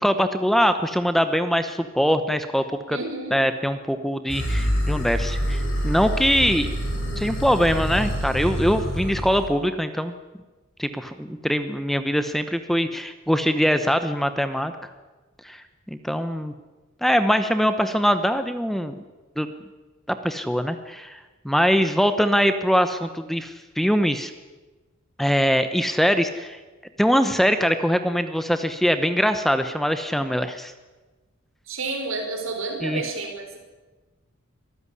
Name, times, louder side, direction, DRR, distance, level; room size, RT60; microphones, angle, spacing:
voice 1, 0.0-3.0 3.3-6.7 7.2-10.1 10.8-14.7 15.4-16.5 17.0-19.0 19.4-19.5 20.1-21.2 21.4-24.3 25.2-26.6 27.0-30.7 32.8-33.0, equal, ahead, 10 dB, 0.9 m, -22 dB
voice 2, 2.9-3.4 31.7-33.6, right 3 dB, 70° right, 4 dB, 5.0 m, -30 dB
sound 1, 4.3-9.5, equal, 65° left, 7.8 m, -26 dB
24.0 x 14.0 x 9.8 m, 1.2 s
head